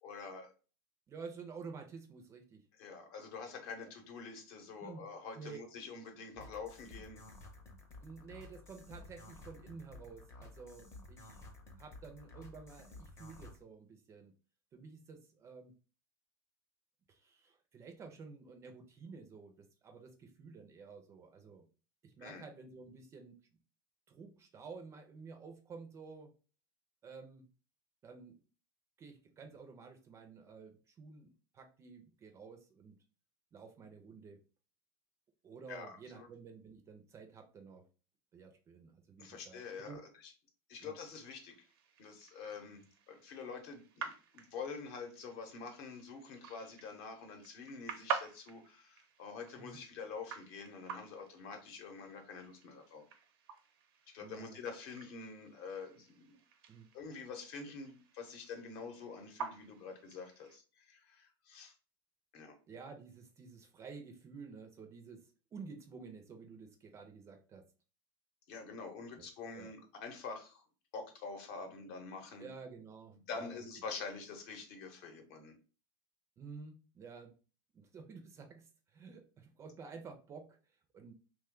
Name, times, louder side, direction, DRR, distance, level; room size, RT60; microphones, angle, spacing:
voice 1, 0.0-0.5 2.8-7.2 22.2-22.4 35.7-36.3 39.2-40.3 40.7-41.7 42.0-53.0 54.1-56.4 56.9-61.7 62.3-62.6 68.5-70.6 70.9-72.5 73.1-75.5, left 5 dB, 50° left, 5 dB, 0.8 m, -46 dB
voice 2, 1.1-2.7 3.8-3.9 4.8-5.1 5.3-5.6 8.0-11.4 11.8-14.3 14.7-15.7 17.1-21.6 22.0-23.4 24.1-26.3 27.0-27.4 28.0-28.4 29.0-33.0 33.5-34.4 35.4-37.8 38.3-40.0 40.8-41.0 42.8-42.9 49.6-49.8 54.2-54.6 56.7-56.9 62.7-67.7 69.2-69.3 69.5-69.7 72.4-73.6 76.4-77.3 77.7-81.1, right 5 dB, 20° right, 5 dB, 0.4 m, -51 dB
sound 1, 6.4-13.6, left 2 dB, 20° left, 0.7 m, -53 dB
sound 2, 41.0-60.6, right 6 dB, 75° right, 0.6 m, -48 dB
2.9 x 2.2 x 3.6 m, 0.36 s
supercardioid pair, 145°, 13 cm